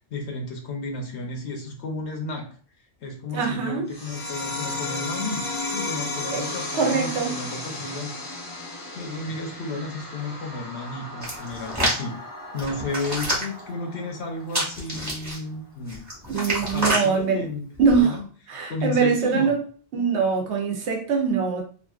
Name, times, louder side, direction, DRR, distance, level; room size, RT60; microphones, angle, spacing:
voice 1, 0.0-2.6 3.0-8.4 9.0-12.2 12.5-16.1 16.7-17.7 18.0-18.2 18.7-19.5, left 2 dB, 75° left, 0.9 m, -33 dB
voice 2, 3.3-3.9 6.3-6.4 6.7-7.4 16.3-17.5 17.8-18.2 18.5-19.6 19.9-21.6, right 5 dB, 75° right, 1.0 m, -23 dB
sound 1, 3.9-14.9, left 2 dB, 25° left, 0.5 m, -34 dB
Hands, 11.2-12.0 12.6-13.6 14.5-15.4 15.9-17.1 17.8-18.0, right 1 dB, 15° right, 1.1 m, -27 dB
2.9 x 2.5 x 2.3 m
omnidirectional pair, 1.2 m